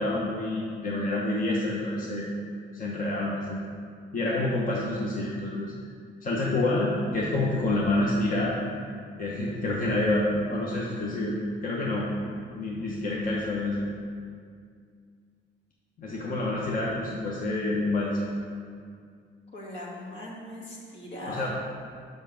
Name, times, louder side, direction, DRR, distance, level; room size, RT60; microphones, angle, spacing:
voice 1, 0.0-2.2 2.7-3.6 4.1-5.7 6.2-8.6 9.2-12.1 12.5-13.9 16.0-18.2 21.2-21.5, left 2 dB, 45° left, -4 dB, 0.9 m, -28 dB
voice 2, 19.5-21.5, left 1 dB, 65° left, -4 dB, 1.7 m, -40 dB
5.4 x 5.3 x 5.2 m, 2.1 s
cardioid pair, 90°, 20 cm